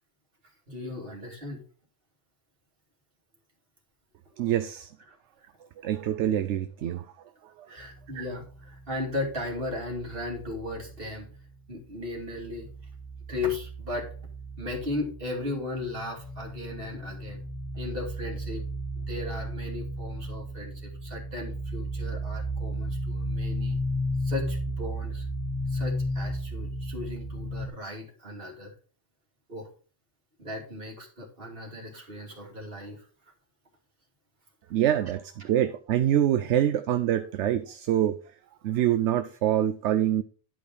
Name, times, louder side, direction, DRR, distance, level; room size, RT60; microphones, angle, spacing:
voice 1, 0.7-1.6 7.7-11.3 11.7-12.7 13.3-14.1 14.6-17.4 17.7-18.7 19.0-23.8 24.2-25.3 25.7-28.7 29.5-29.7 30.4-33.1, left 2 dB, 50° right, 2.8 m, -36 dB
voice 2, 4.4-4.9 5.8-7.1 7.4-7.7 8.1-8.3 34.7-38.2 38.6-40.2, right 11 dB, 75° right, 0.9 m, -25 dB
sound 1, 7.8-11.6 11.9-27.7, equal, 50° left, 1.9 m, -35 dB
11.0 x 5.2 x 4.7 m
omnidirectional pair, 1.3 m